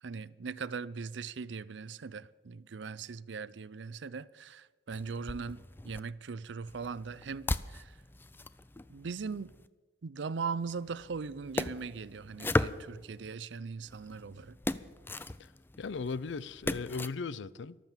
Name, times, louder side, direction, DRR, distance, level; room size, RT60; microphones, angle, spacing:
voice 1, 0.0-8.0 8.9-9.5 10.0-14.6, right 5 dB, 75° right, 0.5 m, -40 dB
sound 1, 4.9-6.0 6.7-9.7 10.6-13.3 13.8-17.1, left 2 dB, 10° left, 0.4 m, -38 dB
voice 2, 15.8-17.8, left 4 dB, 75° left, 0.5 m, -37 dB
13.5 x 12.5 x 7.3 m
head